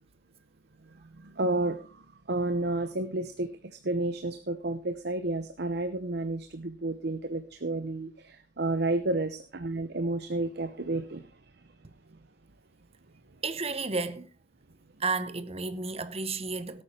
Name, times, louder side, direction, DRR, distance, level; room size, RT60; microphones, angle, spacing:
voice 1, 1.2-11.3, right 2 dB, 60° right, 1.0 m, -31 dB
voice 2, 13.4-14.3 15.0-16.8, right 4 dB, 35° right, 1.0 m, -32 dB
17.0 x 9.0 x 4.4 m
head